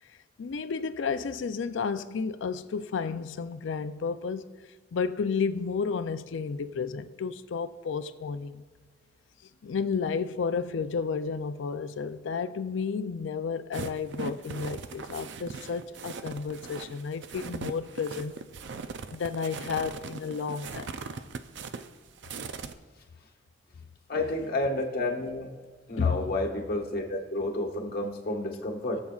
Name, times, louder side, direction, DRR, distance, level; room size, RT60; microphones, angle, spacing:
voice 1, 0.4-4.5 4.9-8.6 9.6-18.3 19.1-21.0 24.1-24.2 26.0-26.3, left 5 dB, 80° left, 0.4 m, -32 dB
sound 1, 13.7-22.7, right 4 dB, 65° right, 0.5 m, -39 dB
voice 2, 24.1-25.5 25.9-29.0, left 2 dB, 55° left, 1.4 m, -30 dB
21.5 x 7.5 x 2.4 m
head